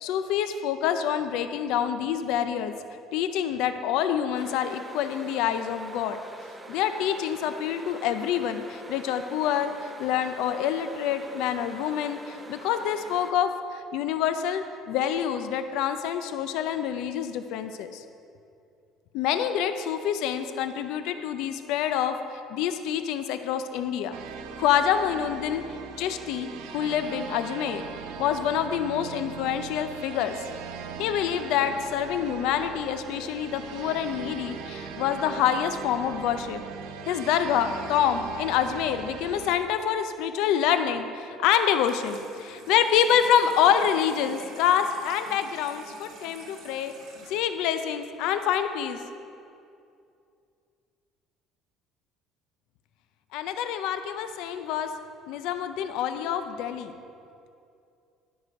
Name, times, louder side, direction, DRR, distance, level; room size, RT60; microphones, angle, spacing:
voice 1, 0.0-2.7 3.1-6.2 6.7-18.0 19.1-24.2 24.6-25.6 26.0-27.8 28.2-30.3 31.0-36.6 37.1-46.9 47.3-49.0 53.3-54.9 55.3-56.9, left 9 dB, 70° left, 9 dB, 0.4 m, -27 dB
sound 1, 4.3-13.3, right 2 dB, 10° right, 0.4 m, -45 dB
sound 2, 24.1-39.6, right 6 dB, 80° right, 0.6 m, -39 dB
Water tap faucet / Sink (filling or washing), 41.6-48.6, right 3 dB, 55° right, 1.5 m, -49 dB
11.5 x 4.8 x 5.2 m, 2.5 s
cardioid pair, 165°, 0 cm